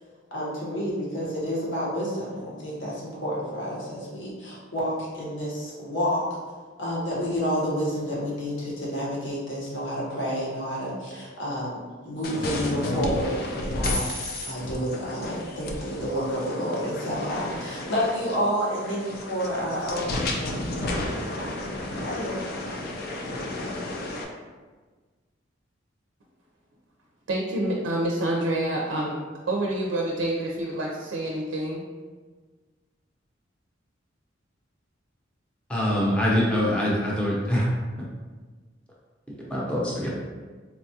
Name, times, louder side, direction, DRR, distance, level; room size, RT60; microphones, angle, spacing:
voice 1, 0.3-6.2 6.8-22.4, equal, 70° left, 1.1 m, -30 dB
sound 1, 12.2-24.2, left 1 dB, 50° left, 0.4 m, -32 dB
voice 2, 27.3-31.8, right 1 dB, 75° right, 0.5 m, -27 dB
voice 3, 35.7-37.6 39.5-40.1, left 1 dB, 5° left, 0.7 m, -24 dB
4.0 x 2.3 x 2.8 m
head